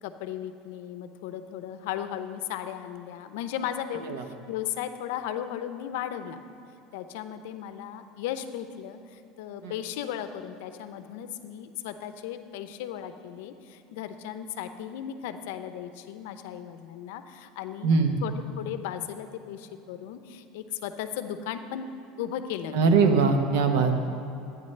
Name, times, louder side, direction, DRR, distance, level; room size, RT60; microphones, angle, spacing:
voice 1, 0.0-6.4 6.9-21.9 22.2-22.8, left 10 dB, 80° left, 9 dB, 0.5 m, -36 dB
voice 2, 17.8-18.2 22.7-24.0, right 4 dB, 90° right, 5 dB, 0.9 m, -22 dB
12.5 x 9.2 x 3.2 m, 2.6 s
supercardioid pair, 140°, 0 cm